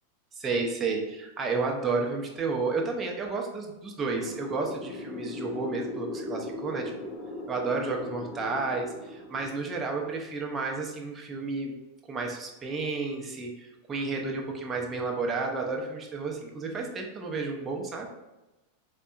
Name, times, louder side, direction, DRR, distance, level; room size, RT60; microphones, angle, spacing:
voice 1, 0.3-6.9 7.5-11.7 12.1-18.1, right 4 dB, 20° right, 1 dB, 0.5 m, -31 dB
sound 1, 4.1-10.3, left 2 dB, 25° left, 0.6 m, -39 dB
4.2 x 2.1 x 2.3 m, 1.0 s
figure-of-eight pair, 90°, 0 cm